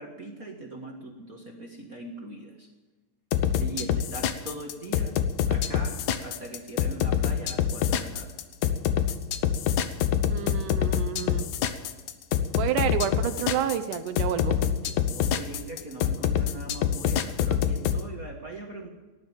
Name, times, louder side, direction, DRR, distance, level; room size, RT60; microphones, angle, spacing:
voice 1, 0.0-2.7 3.6-5.1 5.5-8.3 15.1-18.9, right 2 dB, 45° right, 1 dB, 1.1 m, -41 dB
sound 1, 3.3-18.0, left 9 dB, 70° left, 2.0 m, -25 dB
voice 2, 10.2-11.5 12.6-14.9, right 10 dB, 75° right, 10 dB, 2.2 m, -30 dB
17.5 x 11.0 x 7.3 m, 1.2 s
omnidirectional pair, 3.9 m